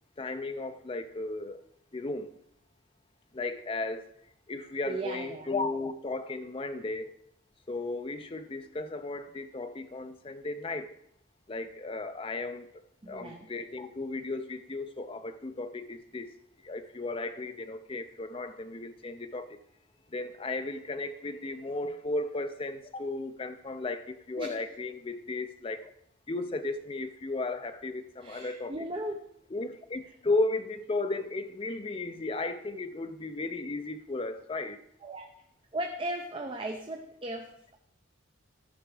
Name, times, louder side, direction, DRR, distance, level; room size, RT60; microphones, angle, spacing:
voice 1, 0.2-1.6 1.9-2.3 3.3-4.1 4.5-7.1 7.7-10.9 11.5-16.3 16.6-19.6 20.1-25.9 26.3-28.7 29.5-34.8, left 2 dB, 25° left, 9 dB, 0.5 m, -35 dB
voice 2, 4.9-5.6 13.0-13.5 24.4-24.6 28.2-29.3 35.0-35.3 35.7-37.8, right 1 dB, 25° right, 3 dB, 0.7 m, -37 dB
13.5 x 6.0 x 4.9 m, 0.71 s
head